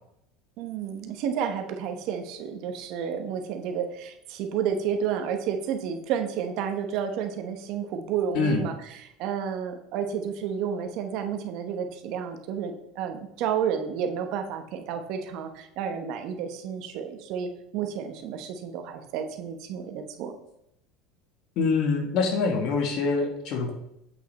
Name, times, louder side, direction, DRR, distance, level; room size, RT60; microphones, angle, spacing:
voice 1, 0.6-20.3, right 7 dB, 60° right, 6 dB, 1.1 m, -31 dB
voice 2, 21.6-23.7, left 4 dB, 55° left, 3 dB, 1.7 m, -25 dB
8.3 x 5.5 x 4.2 m, 0.79 s
cardioid pair, 140°, 0 cm